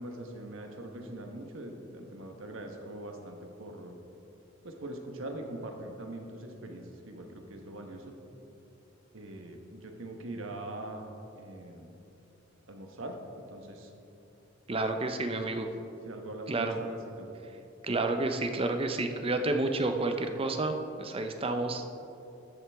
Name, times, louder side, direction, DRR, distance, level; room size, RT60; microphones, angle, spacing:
voice 1, 0.0-4.0 4.6-8.2 9.1-11.1 11.3-12.0 12.7-13.9 16.0-17.3, right 1 dB, 85° right, 3 dB, 1.2 m, -42 dB
voice 2, 14.7-15.7 16.5-16.8 17.8-21.9, right 2 dB, 30° right, 6 dB, 0.6 m, -30 dB
13.5 x 7.7 x 3.5 m, 2.9 s
head